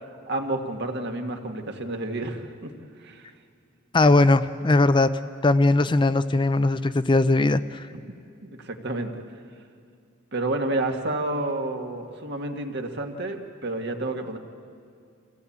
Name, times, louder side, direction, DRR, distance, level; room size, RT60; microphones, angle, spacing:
voice 1, 0.3-2.7 3.0-3.3 7.9-8.0 8.4-9.2 10.3-14.4, right 2 dB, 55° right, 4 dB, 1.8 m, -30 dB
voice 2, 3.9-5.1 5.4-7.9, left 2 dB, 25° left, 12 dB, 0.5 m, -19 dB
26.0 x 16.0 x 8.6 m, 2.4 s
head